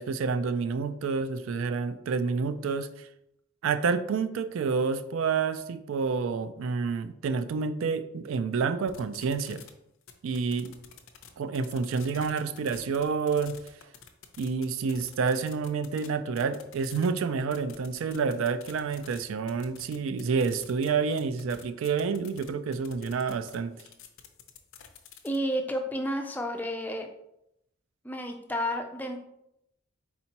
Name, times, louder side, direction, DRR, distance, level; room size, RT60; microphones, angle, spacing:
voice 1, 0.0-3.1 3.6-9.6 10.2-10.7 11.4-13.6 14.4-23.8, right 5 dB, 75° right, 11 dB, 0.3 m, -29 dB
sound 1, 8.9-9.7 10.0-11.3 11.5-16.1 16.4-17.1 17.5-19.2 19.5-20.9 21.2-25.4, left 9 dB, 75° left, 0.5 m, -48 dB
voice 2, 25.2-27.1 28.0-29.2, equal, 10° left, 4 dB, 0.3 m, -31 dB
4.3 x 4.2 x 2.9 m, 0.80 s
head